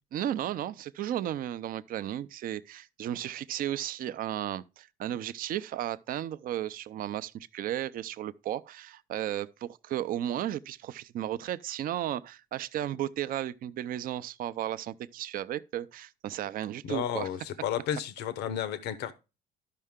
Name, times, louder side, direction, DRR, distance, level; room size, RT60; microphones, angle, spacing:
voice 1, 0.1-17.3, right 11 dB, 55° right, 0.5 m, -34 dB
voice 2, 16.8-19.1, left 10 dB, 85° left, 0.9 m, -32 dB
12.5 x 5.5 x 3.6 m
cardioid pair, 110°, 17 cm